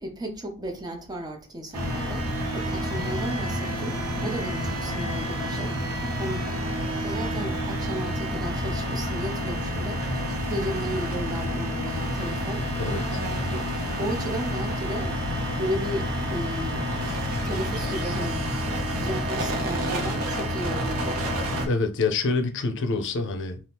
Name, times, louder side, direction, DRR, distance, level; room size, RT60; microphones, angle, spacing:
voice 1, 0.0-2.2 2.5-5.8 6.2-6.4 7.0-10.2 10.5-12.7 13.4-13.6 14.0-15.1 15.6-16.9 17.4-18.4 18.9-21.2, equal, 20° right, 0.6 m, -34 dB
sound 1, 1.7-21.7, equal, 85° right, 0.9 m, -29 dB
voice 2, 12.8-13.2 21.7-23.6, left 3 dB, 55° left, 0.5 m, -26 dB
2.8 x 2.4 x 3.4 m
head